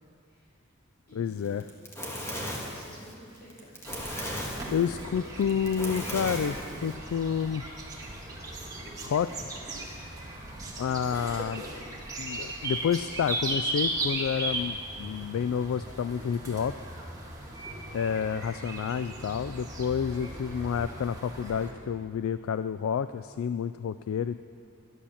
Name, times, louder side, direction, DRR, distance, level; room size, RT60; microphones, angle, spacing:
voice 1, 0.2-0.6 1.1-1.5 2.6-3.9 4.7-5.4, equal, 50° left, -6 dB, 4.3 m, -51 dB
voice 2, 1.2-1.6 4.4-7.7 9.0-9.5 10.8-11.6 12.2-16.7 17.9-24.4, left 7 dB, 70° left, 12 dB, 0.3 m, -29 dB
Fire, 1.5-7.0, equal, 15° left, 1.8 m, -37 dB
sound 1, 3.8-21.7, right 2 dB, 15° right, 1.9 m, -37 dB
11.5 x 11.5 x 7.1 m, 2.3 s
head